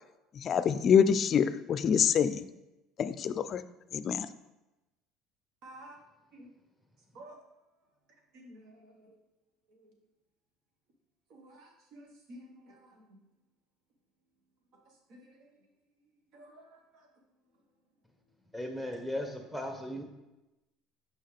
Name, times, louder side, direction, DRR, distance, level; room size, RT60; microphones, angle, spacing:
voice 1, 0.4-2.4 3.0-3.6 3.9-4.3, left 7 dB, 50° left, 13 dB, 0.4 m, -25 dB
voice 2, 5.6-6.0 6.3-6.5 7.1-7.4 8.3-9.1 11.3-13.1 15.1-15.5 16.3-16.8, right 1 dB, 65° right, 1 dB, 1.5 m, -52 dB
voice 3, 18.5-20.0, left 1 dB, 10° right, 3 dB, 1.4 m, -37 dB
5.5 x 5.5 x 3.4 m, 1.0 s
hypercardioid pair, 80°, 0 cm